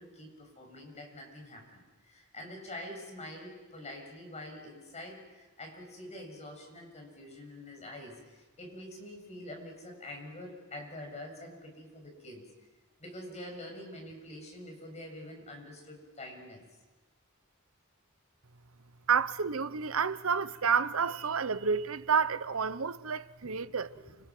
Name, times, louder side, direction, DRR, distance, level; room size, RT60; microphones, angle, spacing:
voice 1, 0.0-12.4 13.0-16.7 23.4-23.7 23.9-24.0, left 1 dB, 35° left, 7.2 m, -46 dB
voice 2, 19.1-23.9, right 6 dB, 75° right, 0.9 m, -29 dB
30.0 x 26.0 x 6.1 m
head